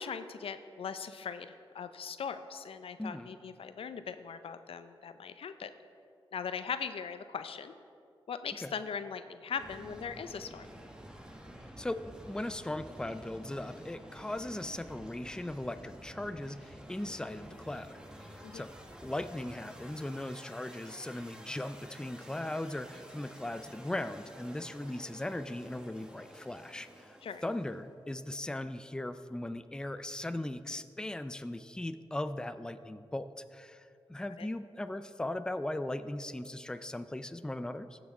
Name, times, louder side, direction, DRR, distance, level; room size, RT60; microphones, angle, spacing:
voice 1, 0.0-5.7 6.3-7.7 8.3-10.7 18.4-18.6 27.2-27.4 34.4-34.5, left 6 dB, 75° left, 11 dB, 0.4 m, -40 dB
voice 2, 3.0-3.3 8.6-8.7 11.8-18.7 19.0-27.2 27.4-38.0, left 1 dB, 10° left, 11 dB, 0.4 m, -38 dB
sound 1, 9.6-27.9, equal, 10° right, 1.2 m, -51 dB
16.0 x 6.0 x 3.6 m, 2.5 s
cardioid pair, 55°, 10 cm